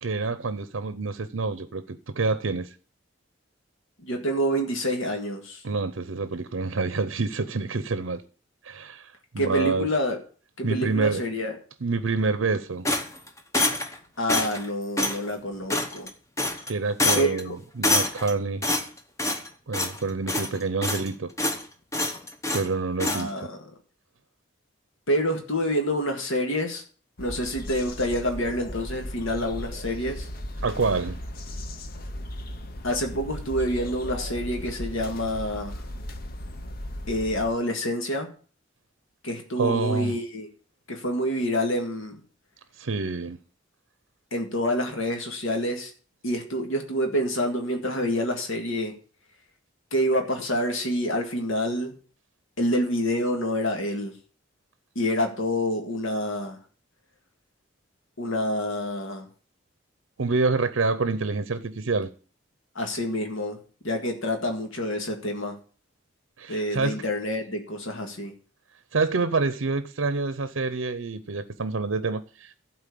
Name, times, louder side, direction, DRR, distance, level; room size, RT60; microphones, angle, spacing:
voice 1, 0.0-2.7 5.6-8.2 8.6-9.9 10.6-11.2 11.8-12.9 16.7-18.6 19.7-21.3 22.5-23.3 30.6-31.2 39.6-40.2 42.8-43.4 60.2-62.1 66.4-67.0 68.9-72.5, right 3 dB, 75° right, 0.7 m, -27 dB
voice 2, 4.0-5.6 9.4-10.2 10.6-11.6 14.2-16.1 17.2-17.6 23.0-23.7 25.1-26.8 27.2-30.3 32.8-35.8 37.1-38.3 39.2-40.5 40.9-42.2 44.3-45.9 46.2-48.9 49.9-51.9 52.6-54.1 55.0-56.6 58.2-59.3 62.8-63.6 63.8-65.6 66.5-68.3, equal, 75° left, 1.9 m, -27 dB
sound 1, 12.8-14.0 14.3-14.7 15.0-15.2 15.7-16.1 16.4-16.7 17.0-17.4 17.8-18.3 18.6-19.5 19.7-20.0 20.3-21.1 21.4-21.6 21.9-22.7 23.0-23.2, left 2 dB, 15° left, 0.8 m, -26 dB
sound 2, 27.2-37.5, left 1 dB, 45° left, 0.8 m, -36 dB
12.0 x 4.4 x 8.4 m
head